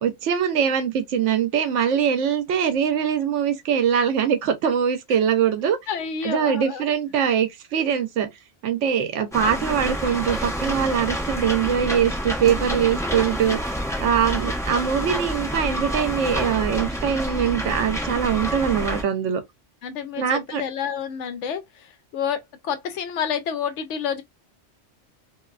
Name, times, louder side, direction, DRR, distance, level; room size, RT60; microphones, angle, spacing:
voice 1, 0.0-5.8 6.2-8.3 8.6-13.6 14.0-19.4 20.2-20.6, right 8 dB, 75° right, 0.9 m, -22 dB
voice 2, 5.9-6.8 19.8-21.9 22.1-24.2, left 7 dB, 75° left, 0.9 m, -29 dB
sound 1, 9.3-19.0, equal, 5° left, 0.4 m, -28 dB
2.6 x 2.2 x 2.3 m
omnidirectional pair, 1.3 m